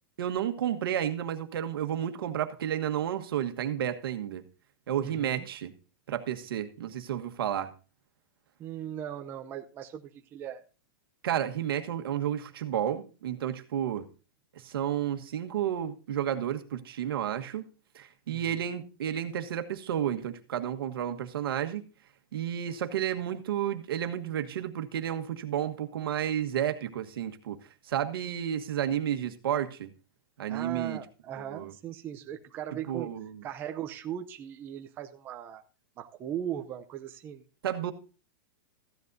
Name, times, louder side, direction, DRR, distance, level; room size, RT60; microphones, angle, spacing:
voice 1, 0.2-4.4 4.9-5.7 6.1-7.7 11.2-14.1 14.5-17.7 17.9-21.8 22.3-27.6 27.8-29.9 30.4-31.0 31.4-31.7 32.9-33.4 37.6-37.9, right 10 dB, 80° right, 1.4 m, -31 dB
voice 2, 5.0-5.5 8.6-10.6 18.3-18.6 30.5-33.1 33.4-35.6 36.0-37.5, right 10 dB, 15° right, 0.6 m, -38 dB
14.5 x 10.5 x 2.7 m
supercardioid pair, 175°, 12 cm